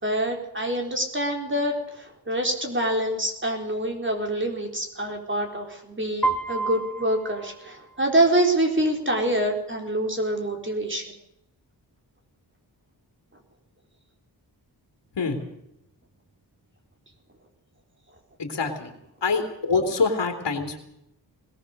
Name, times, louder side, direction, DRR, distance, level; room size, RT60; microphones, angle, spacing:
voice 1, 0.0-11.1, right 1 dB, 30° right, 2 dB, 4.1 m, -26 dB
Piano, 6.2-8.3, right 3 dB, 5° left, 1.6 m, -30 dB
voice 2, 18.4-18.9 19.2-20.8, left 4 dB, 90° left, 3 dB, 3.1 m, -25 dB
20.5 x 19.0 x 6.7 m, 0.81 s
wide cardioid pair, 110°, 42 cm